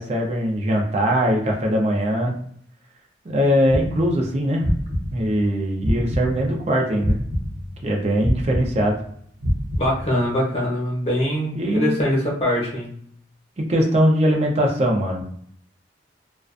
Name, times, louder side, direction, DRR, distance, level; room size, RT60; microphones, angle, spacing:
voice 1, 0.0-2.4 3.2-4.7 5.1-7.2 7.8-9.0 11.5-12.0 13.6-15.2, equal, 40° right, 0 dB, 0.5 m, -21 dB
sound 1, 3.7-6.6 7.0-10.3, equal, 85° right, 0.8 m, -26 dB
voice 2, 9.8-12.9, equal, 35° left, -3 dB, 0.8 m, -23 dB
2.4 x 2.1 x 2.4 m, 0.63 s
head